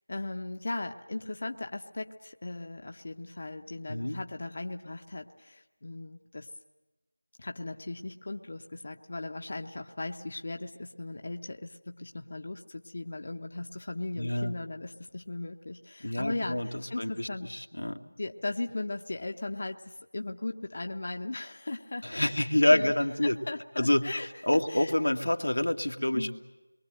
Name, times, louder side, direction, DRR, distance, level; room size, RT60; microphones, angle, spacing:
voice 1, 0.1-6.5 7.4-17.5 18.2-22.4 22.7-23.0 23.2-24.9 26.1-26.4, left 2 dB, 40° left, 5 dB, 0.9 m, -38 dB
voice 2, 14.2-14.5 16.0-18.0 22.0-23.4 23.8-24.0 24.5-26.4, left 1 dB, 90° left, 4 dB, 2.1 m, -27 dB
28.0 x 23.0 x 7.8 m, 1.1 s
figure-of-eight pair, 175°, 0 cm